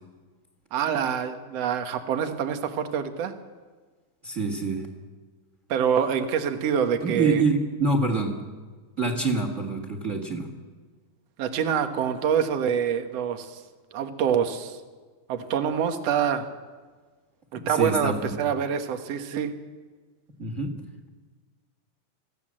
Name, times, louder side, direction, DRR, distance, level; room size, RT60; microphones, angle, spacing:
voice 1, 0.7-3.3 5.7-7.4 11.4-13.6 13.9-14.8 15.3-16.5 17.5-19.5, right 8 dB, 60° right, 7 dB, 2.3 m, -26 dB
voice 2, 4.2-4.9 7.0-8.4 9.0-10.5 17.6-18.4 20.4-20.8, right 3 dB, 30° right, 4 dB, 1.9 m, -26 dB
25.5 x 16.0 x 7.6 m, 1.4 s
omnidirectional pair, 3.6 m